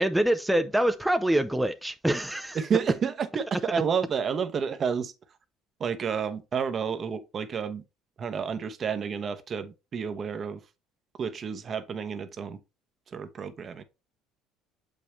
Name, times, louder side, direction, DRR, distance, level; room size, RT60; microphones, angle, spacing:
voice 1, 0.0-2.6, right 1 dB, 5° right, 0.6 m, -25 dB
voice 2, 2.5-5.1 5.8-7.8 8.2-10.6 11.2-12.6 13.1-13.8, right 6 dB, 45° right, 0.9 m, -30 dB
6.8 x 5.3 x 3.2 m
hypercardioid pair, 70°, 0 cm